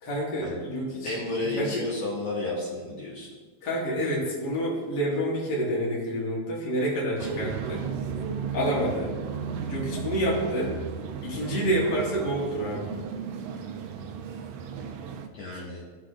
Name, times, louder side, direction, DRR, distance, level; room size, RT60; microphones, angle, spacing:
voice 1, 0.0-1.2 1.5-1.8 3.6-7.9 8.5-9.2 9.7-10.8 11.2-12.9 15.5-15.6, equal, 35° left, -5 dB, 2.3 m, -28 dB
voice 2, 1.0-3.3 15.3-15.8, left 2 dB, 60° left, -7 dB, 2.5 m, -32 dB
sound 1, 7.2-15.3, right 6 dB, 80° right, 1.5 m, -34 dB
15.5 x 6.2 x 2.5 m, 1.4 s
omnidirectional pair, 3.5 m